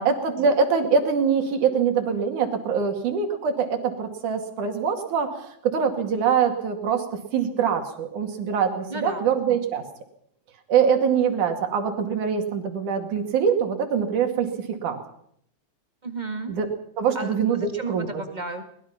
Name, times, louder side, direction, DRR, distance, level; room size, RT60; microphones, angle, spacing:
voice 1, 0.0-7.1 7.3-9.8 10.7-15.0 16.5-16.7 17.0-18.2, right 6 dB, 75° right, 5 dB, 3.8 m, -24 dB
voice 2, 8.9-9.3 16.0-16.5 17.1-18.6, right 3 dB, 20° right, 6 dB, 1.5 m, -33 dB
22.0 x 20.5 x 5.8 m, 0.69 s
omnidirectional pair, 3.5 m